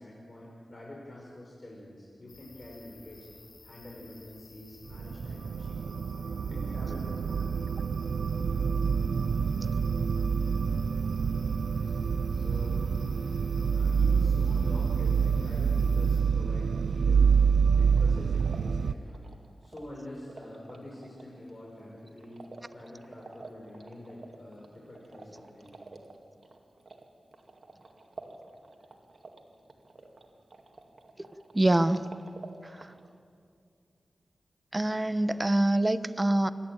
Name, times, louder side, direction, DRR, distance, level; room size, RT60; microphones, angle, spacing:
voice 1, 0.0-3.3 3.6-7.7 8.2-8.7 11.7-12.0 12.3-12.9 13.7-17.3 17.7-19.2 19.6-22.5 22.7-25.8, left 1 dB, 40° left, -4 dB, 5.3 m, -46 dB
sound 1, 2.3-16.2, left 3 dB, 80° left, 3.7 m, -53 dB
sound 2, 4.9-18.9, right 6 dB, 85° right, 0.4 m, -27 dB
sound 3, 17.6-33.2, right 2 dB, 55° right, 2.2 m, -51 dB
voice 2, 31.5-32.0 32.6-32.9 34.7-36.5, right 1 dB, 25° right, 12 dB, 1.0 m, -25 dB
27.5 x 11.5 x 9.0 m, 2.3 s
cardioid pair, 45°, 0 cm